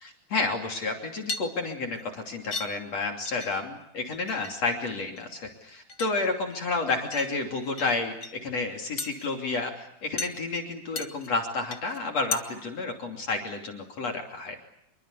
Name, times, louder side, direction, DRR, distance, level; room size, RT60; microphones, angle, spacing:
voice 1, 0.0-14.6, left 3 dB, 45° left, 2 dB, 3.8 m, -31 dB
sound 1, 1.2-2.0 2.5-2.7 3.0-3.8 4.0-4.5 4.8-5.5 5.9-6.7 7.1-8.3 9.0-9.3 10.2-10.4 10.9-11.3 11.7-12.0 12.3-12.4, left 4 dB, 65° left, 0.7 m, -35 dB
27.5 x 23.5 x 8.3 m, 0.76 s
omnidirectional pair, 4.4 m